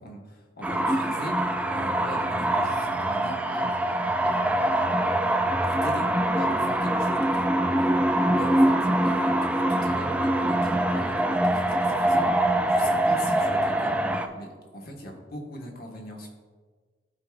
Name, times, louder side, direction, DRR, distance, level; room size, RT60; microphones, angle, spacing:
voice 1, 0.0-3.7 4.0-4.9 5.6-6.1 6.4-7.5 7.8-8.7 9.0-14.0 14.3-16.3, equal, 55° left, 0 dB, 1.2 m, -40 dB
sound 1, 0.6-14.3, right 1 dB, 5° right, 0.3 m, -24 dB
12.5 x 4.6 x 2.4 m, 1.5 s
head